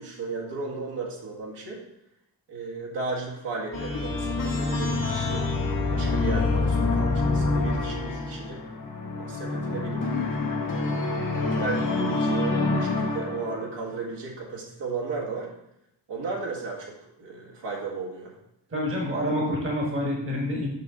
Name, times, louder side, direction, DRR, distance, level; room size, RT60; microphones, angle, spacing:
voice 1, 0.0-1.8 2.5-5.4 5.9-8.6 9.1-10.1 10.6-15.5 16.1-18.3, right 3 dB, 70° right, -4 dB, 1.8 m, -35 dB
sound 1, 3.7-13.8, left 3 dB, 45° left, 1.0 m, -26 dB
voice 2, 18.7-20.7, left 1 dB, 30° right, -2 dB, 1.3 m, -27 dB
6.8 x 5.4 x 3.7 m, 0.80 s
wide cardioid pair, 160°, 43 cm